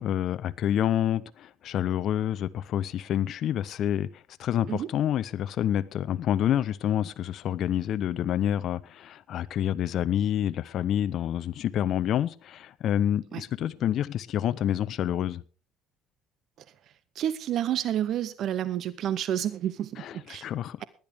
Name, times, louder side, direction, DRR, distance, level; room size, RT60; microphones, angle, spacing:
voice 1, 0.0-15.4 20.0-20.8, left 10 dB, 60° left, 0.7 m, -28 dB
voice 2, 17.1-20.5, right 11 dB, 60° right, 0.7 m, -29 dB
19.0 x 10.5 x 3.5 m
cardioid pair, 100°, 0 cm